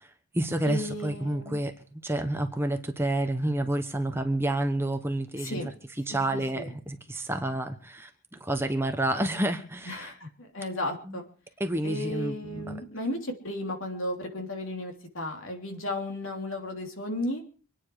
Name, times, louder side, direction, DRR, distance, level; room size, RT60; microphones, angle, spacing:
voice 1, 0.0-1.7 2.0-5.6 6.1-10.1 11.0-11.2 11.6-12.8, right 1 dB, 10° right, 6 dB, 1.2 m, -29 dB
voice 2, 0.6-1.6 5.4-5.7 6.1-6.7 9.9-11.2 11.8-17.4, left 1 dB, 65° left, 3 dB, 3.5 m, -34 dB
25.5 x 9.9 x 4.9 m, 0.39 s
head